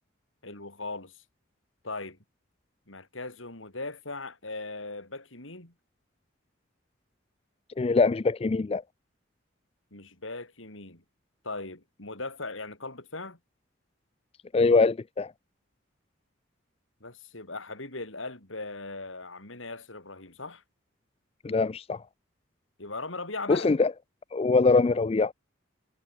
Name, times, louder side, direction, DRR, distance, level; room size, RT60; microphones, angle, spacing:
voice 1, 0.4-1.2 1.8-2.2 2.9-5.7 9.9-11.0 11.4-13.4 17.0-20.6 22.8-23.7, left 3 dB, 85° left, 6.2 m, -39 dB
voice 2, 7.8-8.8 14.5-15.3 21.4-22.0 23.5-23.9 24.3-25.3, left 3 dB, 30° left, 0.4 m, -23 dB
head